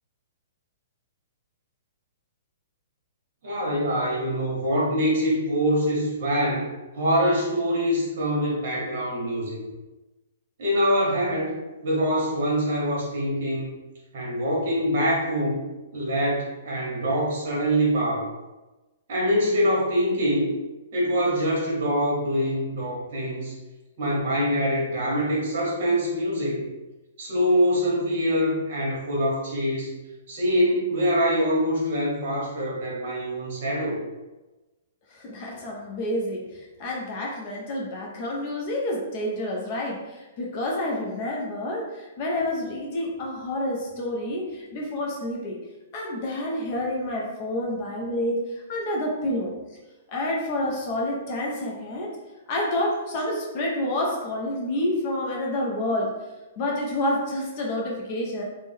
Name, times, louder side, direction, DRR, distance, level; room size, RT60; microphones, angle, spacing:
voice 1, 3.4-6.7 6.9-9.6 10.6-11.5 11.8-13.7 14.1-15.6 15.9-18.3 19.1-20.5 20.9-23.5 24.0-26.7 27.2-30.0 30.3-34.0, equal, 45° right, -4 dB, 1.1 m, -24 dB
voice 2, 35.1-45.6 45.9-49.5 50.1-52.1 52.5-56.1 56.6-58.4, left 1 dB, 30° left, -1 dB, 0.4 m, -28 dB
3.2 x 2.1 x 3.5 m, 1.1 s
hypercardioid pair, 175°, 0 cm